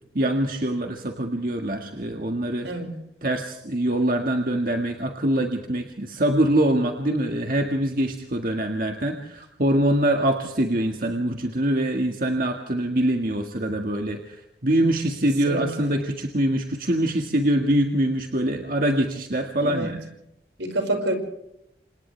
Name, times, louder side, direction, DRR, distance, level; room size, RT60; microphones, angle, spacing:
voice 1, 0.1-2.7 3.2-20.0, right 1 dB, 50° right, 3 dB, 1.8 m, -24 dB
voice 2, 15.5-15.9 19.6-19.9 20.6-21.1, right 1 dB, 80° right, 4 dB, 5.5 m, -28 dB
29.5 x 27.0 x 3.4 m, 0.82 s
head